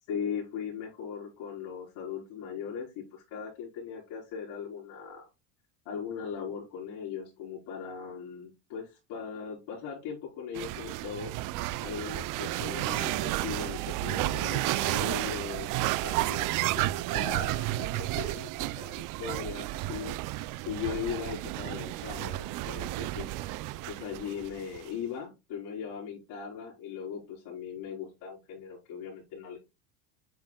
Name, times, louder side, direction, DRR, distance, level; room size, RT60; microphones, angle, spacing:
voice 1, 0.1-5.3 5.8-11.3 11.8-20.1 20.6-23.3 23.9-29.6, left 7 dB, 60° left, -6 dB, 4.2 m, -39 dB
sound 1, 10.6-24.9, right 17 dB, 50° right, 0.5 m, -32 dB
8.4 x 6.2 x 2.3 m, 0.24 s
cardioid pair, 140°, 42 cm